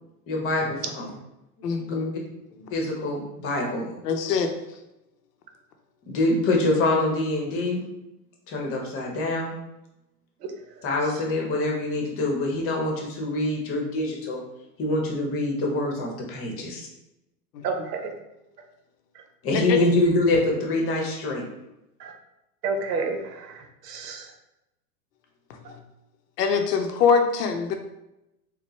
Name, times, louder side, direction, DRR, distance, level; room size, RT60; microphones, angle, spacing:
voice 1, 0.3-1.1 1.9-2.0 2.7-3.9 6.1-7.8 8.5-9.5 10.8-14.4 14.8-16.8 19.4-21.4, left 2 dB, 30° left, 0 dB, 0.9 m, -25 dB
voice 2, 1.6-2.2 4.0-4.5 17.5-17.7 19.5-19.8 26.4-27.7, left 6 dB, 80° left, 5 dB, 0.7 m, -23 dB
voice 3, 17.6-18.1 19.1-19.2 22.0-22.1 22.6-24.3, right 4 dB, 80° right, 5 dB, 0.8 m, -30 dB
4.4 x 2.2 x 3.1 m, 0.90 s
hypercardioid pair, 125°, 47 cm